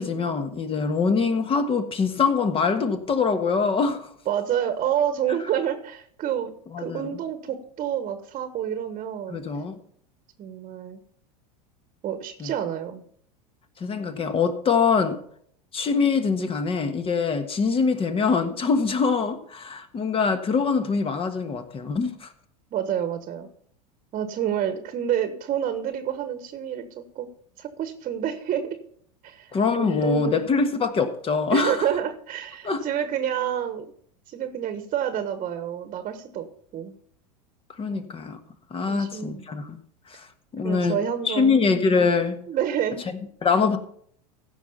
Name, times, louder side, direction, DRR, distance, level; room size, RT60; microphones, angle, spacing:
voice 1, 0.0-4.1 6.7-7.1 9.3-9.8 12.4-12.5 13.8-15.2 15.7-22.3 29.5-31.9 32.6-32.8 37.8-38.4 38.7-39.8 40.1-40.3 40.5-41.0 41.2-42.4 43.4-43.8, left 5 dB, 25° left, 1.4 m, -24 dB
voice 2, 4.3-9.4 10.4-11.0 12.0-13.0 22.7-23.5 24.1-27.3 27.6-28.8 29.2-30.5 31.5-33.8 34.3-36.5 36.7-36.9 37.9-38.1 38.9-39.4 40.6-41.6 42.5-43.0, right 9 dB, 35° right, 1.3 m, -28 dB
15.5 x 6.0 x 5.5 m
hypercardioid pair, 95°, 20 cm